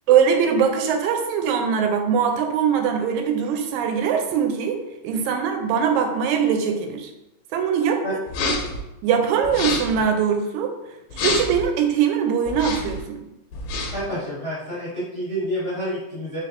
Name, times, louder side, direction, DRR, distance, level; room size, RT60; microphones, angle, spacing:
voice 1, 0.1-4.8 5.0-7.1 7.5-8.0 8.4-8.6 9.0-10.7 11.1-13.3, right 7 dB, 85° right, 5 dB, 1.9 m, -21 dB
sound 1, 8.3-8.8 9.4-10.0 11.1-11.7 12.5-13.0 13.5-14.1, left 3 dB, 80° left, 1.8 m, -27 dB
voice 2, 13.9-16.4, equal, 50° left, -11 dB, 0.7 m, -28 dB
4.4 x 3.2 x 2.5 m, 0.94 s
omnidirectional pair, 3.3 m